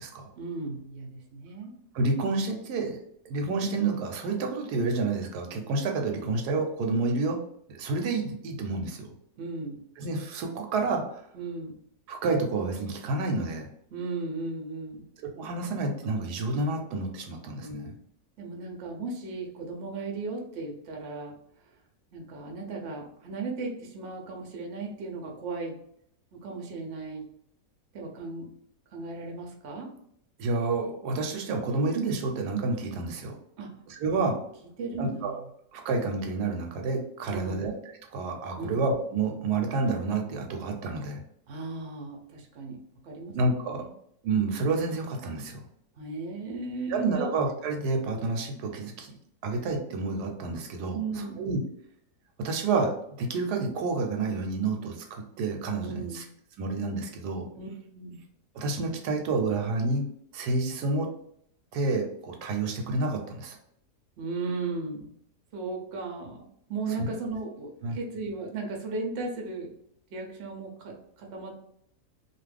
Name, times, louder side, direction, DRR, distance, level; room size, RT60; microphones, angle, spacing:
voice 1, 0.4-1.7 9.4-9.8 11.3-11.8 13.9-15.1 17.6-18.0 18.4-21.3 22.1-25.7 26.4-27.2 27.9-28.5 28.9-29.9 33.6-33.7 34.8-35.4 37.3-37.6 38.6-38.8 41.5-42.8 43.0-43.4 43.7-43.9 46.0-47.3 50.9-51.4 55.8-56.2 57.6-58.2 64.2-65.1 65.5-69.7 70.1-71.6, right 3 dB, 60° right, 1 dB, 0.8 m, -36 dB
voice 2, 1.9-3.0 3.3-7.4 7.8-9.1 10.0-11.2 12.1-13.7 15.4-17.9 30.4-33.3 33.9-34.4 35.0-35.3 35.7-41.2 43.3-43.9 44.2-45.6 46.9-49.1 49.4-51.6 52.4-52.9 53.2-56.2 56.6-57.5 58.5-60.0 60.3-61.1 61.7-63.6 67.0-67.1 67.8-68.0, right 3 dB, 80° right, 3 dB, 1.1 m, -29 dB
2.7 x 2.4 x 3.3 m, 0.70 s
omnidirectional pair, 1.7 m